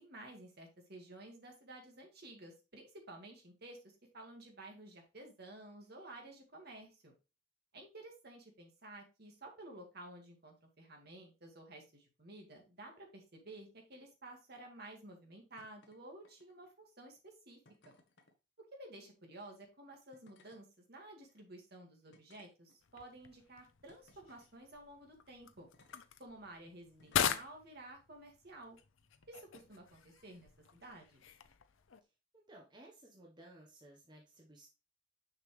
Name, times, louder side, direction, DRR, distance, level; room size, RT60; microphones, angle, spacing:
voice 1, 0.0-3.8 4.1-7.1 7.7-17.6 17.9-18.0 18.7-25.7 26.2-28.8 29.3-31.2, right 1 dB, 50° right, 2 dB, 2.1 m, -53 dB
sound 1, 15.6-16.0 16.2-16.7 17.6-18.3 19.4-19.6 20.1-20.6 21.3-21.4 22.1-23.0 23.9-24.5 25.7-26.0 27.0-27.4 28.5-28.7, left 2 dB, 55° left, 1.3 m, -66 dB
sound 2, 22.8-32.0, left 8 dB, 75° left, 0.6 m, -42 dB
voice 2, 26.8-27.2 32.0-32.1 32.5-34.7, right 1 dB, 20° right, -2 dB, 1.2 m, -58 dB
6.5 x 5.9 x 3.3 m, 0.29 s
head